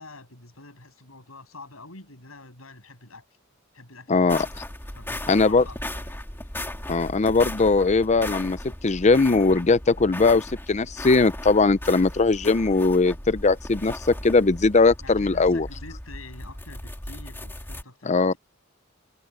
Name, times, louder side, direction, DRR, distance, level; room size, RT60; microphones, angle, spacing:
voice 1, 0.0-3.3 3.7-4.4 4.9-6.1 15.0-18.4, left 2 dB, 90° left, 7.8 m, -46 dB
voice 2, 4.1-4.5 5.3-5.6 6.9-8.6 8.8-13.9 14.2-15.7 18.1-18.3, left 3 dB, 35° left, 0.6 m, -20 dB
sound 1, 4.3-17.8, left 1 dB, 10° left, 2.2 m, -37 dB
head